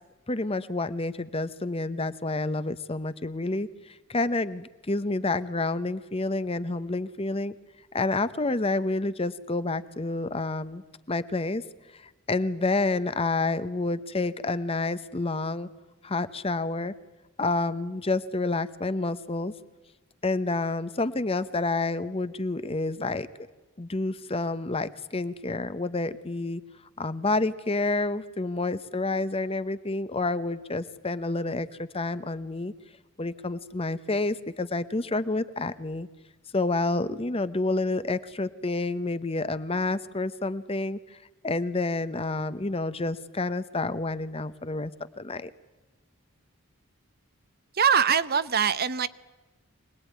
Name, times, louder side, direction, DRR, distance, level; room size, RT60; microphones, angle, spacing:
voice 1, 0.3-7.5 7.9-10.8 11.1-11.6 12.3-15.7 16.0-16.9 17.4-19.5 20.2-23.3 23.8-26.6 27.0-32.7 33.2-36.1 36.5-41.2 41.4-44.9 45.2-45.5, left 2 dB, 25° left, 13 dB, 0.8 m, -29 dB
voice 2, 47.7-49.1, right 7 dB, 45° right, 14 dB, 0.8 m, -23 dB
25.0 x 20.0 x 9.4 m, 1.2 s
head